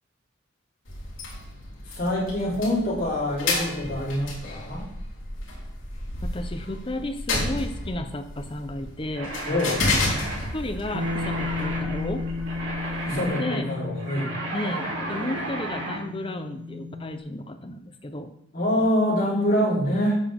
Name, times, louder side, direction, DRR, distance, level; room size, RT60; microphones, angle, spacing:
sound 1, 0.8-13.3, left 2 dB, 70° left, 3.2 m, -32 dB
voice 1, 1.9-4.9 9.5-9.8 13.1-14.3 18.5-20.2, left 1 dB, 45° left, -6 dB, 4.1 m, -25 dB
voice 2, 6.2-9.4 10.5-12.3 13.4-13.7 14.5-18.3, left 1 dB, 25° left, 7 dB, 0.8 m, -33 dB
sound 2, 9.1-16.0, right 2 dB, 60° right, 3.0 m, -34 dB
Bass guitar, 10.9-17.2, left 4 dB, 75° right, 1.0 m, -34 dB
12.0 x 7.3 x 3.6 m, 0.74 s
head